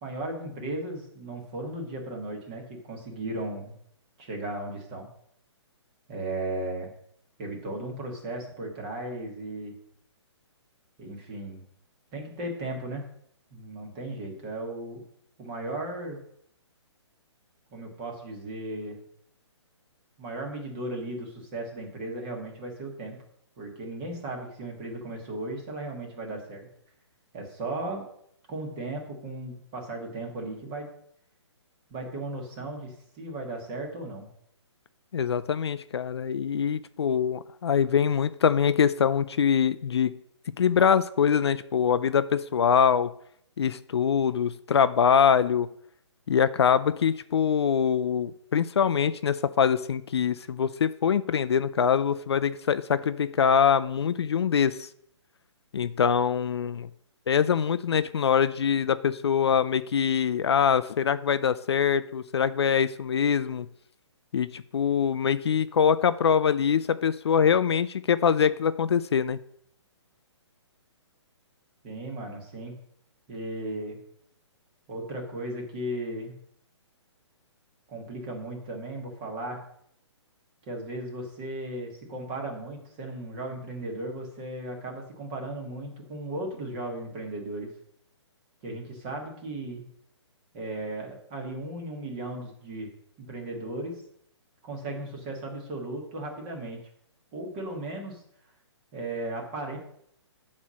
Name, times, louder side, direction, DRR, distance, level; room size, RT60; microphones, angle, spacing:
voice 1, 0.0-3.7 4.2-5.1 6.1-6.9 7.4-9.7 11.0-11.6 12.1-13.0 13.5-15.0 15.4-16.2 17.7-19.0 20.2-23.2 23.6-26.7 27.3-28.0 28.5-30.9 31.9-34.3 71.8-72.7 73.3-74.0 74.9-76.4 77.9-79.6 80.7-87.7 88.6-89.8 90.5-92.9 93.3-94.0 94.6-96.8 97.3-98.2 98.9-99.8, right 1 dB, 15° right, 1 dB, 1.3 m, -36 dB
voice 2, 35.1-40.1 40.6-43.1 43.6-45.7 46.3-54.9 55.7-56.9 57.3-63.7 64.3-69.4, left 7 dB, 60° left, 13 dB, 0.4 m, -24 dB
8.7 x 4.2 x 6.2 m, 0.69 s
hypercardioid pair, 175°, 15 cm